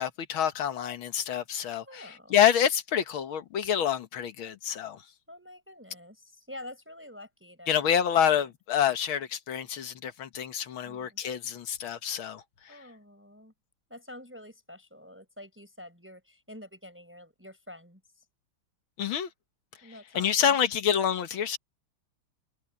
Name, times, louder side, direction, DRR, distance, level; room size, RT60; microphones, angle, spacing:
voice 1, 0.0-5.0 7.7-12.4 19.0-19.3 20.2-21.6, left 9 dB, 75° left, 2.1 m, -27 dB
voice 2, 1.8-2.4 5.3-8.5 10.8-11.2 12.7-13.5 13.9-18.2 19.8-20.6, left 1 dB, 5° right, 5.2 m, -48 dB
omnidirectional pair, 2.3 m